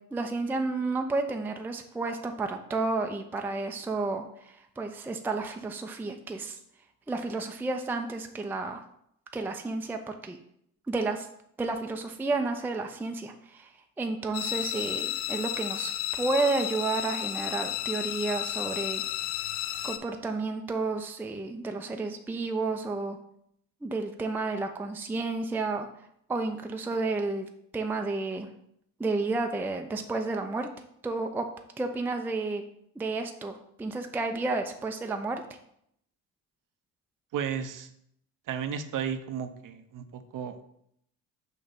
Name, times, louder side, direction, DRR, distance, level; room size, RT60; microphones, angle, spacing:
voice 1, 0.1-6.6 7.1-8.8 9.3-10.4 10.9-11.3 11.6-19.0 19.8-23.2 23.8-25.9 26.3-28.5 29.0-30.7 31.0-31.5 31.8-32.6 33.0-35.4, right 3 dB, 5° right, 5 dB, 0.5 m, -31 dB
sound 1, 14.3-20.0, left 12 dB, 60° left, 0.7 m, -32 dB
voice 2, 37.3-37.9 38.5-40.6, right 8 dB, 45° right, 9 dB, 0.7 m, -33 dB
5.9 x 3.1 x 5.2 m, 0.72 s
hypercardioid pair, 60°, 47 cm